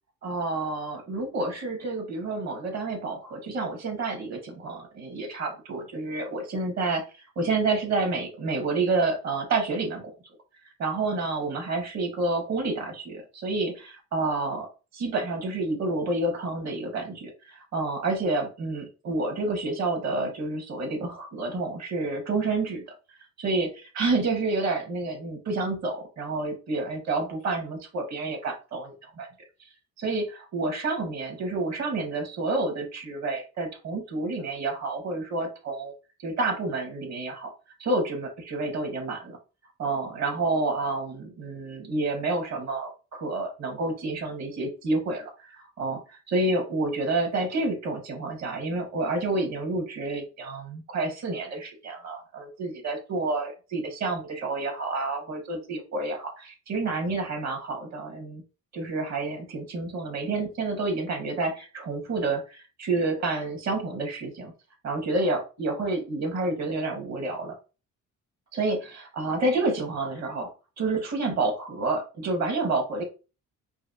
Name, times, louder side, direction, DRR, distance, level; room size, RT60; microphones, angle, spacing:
voice 1, 0.2-10.1 10.6-14.7 14.9-22.8 23.4-29.3 30.0-35.9 36.2-37.5 37.8-39.4 39.8-58.4 58.7-64.5 64.8-67.5 68.5-73.0, right 3 dB, 60° right, 3 dB, 1.8 m, -29 dB
4.7 x 2.7 x 2.8 m, 0.32 s
cardioid pair, 90°, 30 cm